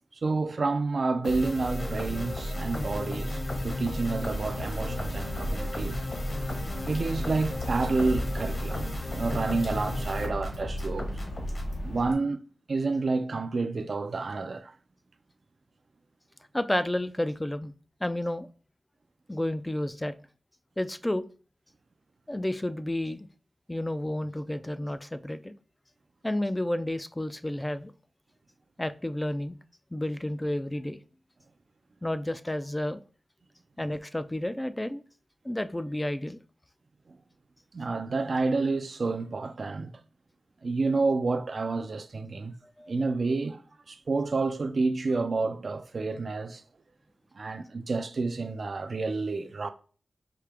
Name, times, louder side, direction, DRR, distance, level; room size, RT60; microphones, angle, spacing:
voice 1, 0.2-6.0 6.9-11.1 11.8-12.4 12.7-14.8 37.7-39.9 40.6-42.6 42.9-43.6 43.9-46.6 47.4-49.7, right 3 dB, 60° right, 0.4 m, -29 dB
sound 1, 1.2-11.8, left 1 dB, 50° left, 1.3 m, -33 dB
Water / Drip, 4.2-12.1, left 1 dB, 80° left, 1.3 m, -38 dB
voice 2, 16.5-17.7 18.0-18.5 19.3-20.1 20.8-21.2 22.3-23.3 23.7-25.5 26.2-27.9 28.8-29.6 29.9-31.0 32.0-33.0 33.8-35.0 35.4-36.4 42.8-42.9, left 1 dB, 15° left, 0.3 m, -31 dB
4.8 x 2.8 x 3.4 m
wide cardioid pair, 90°, 0 cm